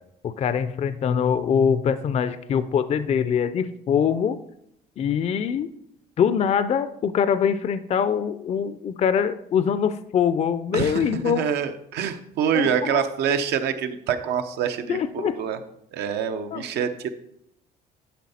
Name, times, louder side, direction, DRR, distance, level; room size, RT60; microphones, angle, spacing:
voice 1, 0.2-4.4 5.0-5.7 6.2-11.5 12.5-13.0 14.9-15.4 16.5-16.6, left 7 dB, 40° left, 13 dB, 0.4 m, -23 dB
voice 2, 10.7-15.6 15.9-17.1, right 8 dB, 80° right, 8 dB, 0.8 m, -26 dB
10.0 x 5.6 x 4.2 m, 0.76 s
cardioid pair, 110°, 17 cm